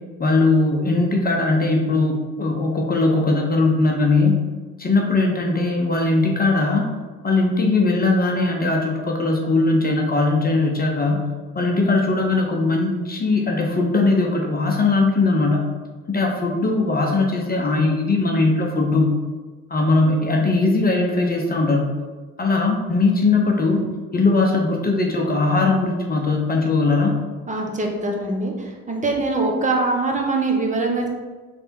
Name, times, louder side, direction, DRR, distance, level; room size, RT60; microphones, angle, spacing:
voice 1, 0.2-4.4 4.8-6.9 7.2-11.2 11.5-15.7 16.1-19.2 19.7-21.9 22.4-23.8 24.1-27.2, left 3 dB, 30° left, 0 dB, 0.9 m, -19 dB
voice 2, 27.5-28.5 28.9-31.1, right 3 dB, 25° right, 1 dB, 1.1 m, -22 dB
3.5 x 3.3 x 4.3 m, 1.3 s
hypercardioid pair, 60°, 30 cm